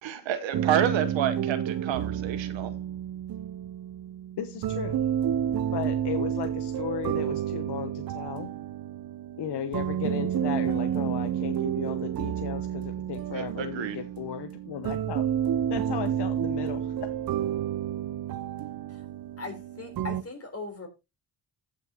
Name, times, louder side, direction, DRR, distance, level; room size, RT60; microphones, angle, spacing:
voice 1, 0.0-2.8 13.3-14.0, right 9 dB, 80° right, 1.1 m, -29 dB
sound 1, 0.5-20.2, right 10 dB, 55° right, 0.6 m, -30 dB
voice 2, 4.4-5.0 5.7-8.5 9.4-15.2 15.7-17.1, left 9 dB, 65° left, 1.0 m, -35 dB
voice 3, 19.4-20.9, left 3 dB, 30° left, 3.7 m, -39 dB
15.0 x 6.3 x 2.9 m
cardioid pair, 85°, 44 cm